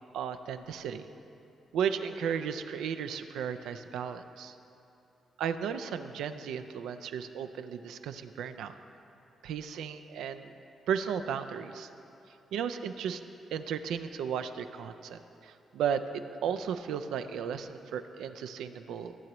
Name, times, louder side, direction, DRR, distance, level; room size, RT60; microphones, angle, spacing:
voice 1, 0.1-1.1 1.7-4.5 5.4-8.7 9.4-10.5 10.9-11.9 12.5-13.2 13.5-19.2, right 7 dB, 85° right, 9 dB, 0.4 m, -34 dB
15.0 x 7.5 x 3.0 m, 2.8 s
cardioid pair, 65°, 0 cm